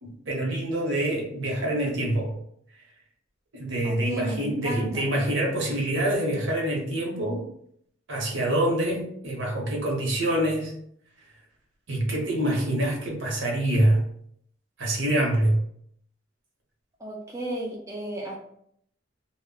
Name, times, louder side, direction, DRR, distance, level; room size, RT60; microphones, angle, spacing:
voice 1, 0.0-2.4 3.5-7.5 8.1-10.7 11.9-14.0 14.8-15.6, right 1 dB, 70° right, -1 dB, 0.8 m, -25 dB
voice 2, 3.8-5.1 17.0-18.4, right 1 dB, 15° right, -3 dB, 0.3 m, -34 dB
2.1 x 2.0 x 3.7 m, 0.68 s
head